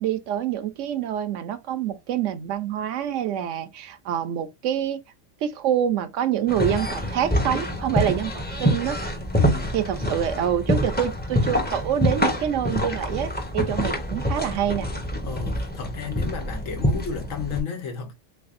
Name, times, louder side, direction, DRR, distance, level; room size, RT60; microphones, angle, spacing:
voice 1, 0.0-5.0 5.4-8.3 8.6-9.0 9.7-14.9, right 10 dB, 75° right, 0.9 m, -26 dB
sound 1, 6.5-17.6, equal, 10° left, 0.6 m, -26 dB
voice 2, 9.3-9.8 15.2-18.1, left 6 dB, 85° left, 1.4 m, -32 dB
3.6 x 3.3 x 2.5 m
omnidirectional pair, 1.3 m